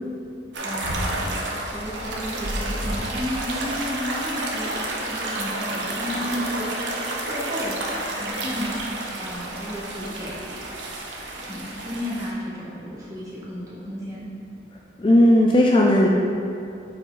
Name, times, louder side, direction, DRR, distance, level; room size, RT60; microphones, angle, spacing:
sound 1, 0.5-12.3, right 1 dB, 80° right, 0.9 m, -30 dB
voice 1, 0.6-6.7 6.9-7.8 8.2-8.8 9.2-10.6 11.4-14.3, left 1 dB, 20° right, -7 dB, 1.4 m, -33 dB
voice 2, 15.0-16.1, left 1 dB, 30° left, -1 dB, 0.4 m, -16 dB
7.2 x 4.3 x 3.9 m, 2.6 s
head